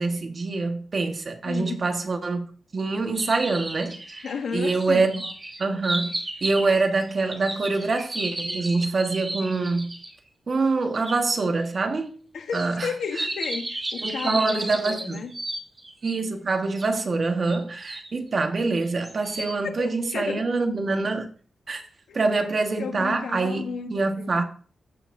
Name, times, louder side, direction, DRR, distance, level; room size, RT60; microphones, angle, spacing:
voice 1, 0.0-2.5 2.7-4.3 4.5-5.3 5.6-6.1 6.4-9.9 10.5-12.1 12.5-12.9 14.0-15.2 16.0-21.3 21.7-21.8 22.1-24.4, right 3 dB, 40° right, 1.4 m, -25 dB
voice 2, 1.4-1.8 4.2-5.3 12.3-15.3 19.6-20.6 22.1-22.3 22.8-24.4, left 5 dB, 80° left, 1.1 m, -33 dB
sound 1, 3.1-10.1 11.0-11.2 12.5-16.2 16.8-16.9 17.5-18.1 18.8-19.6, right 2 dB, 20° right, 1.8 m, -33 dB
15.0 x 5.8 x 2.6 m
wide cardioid pair, 125°, 0 cm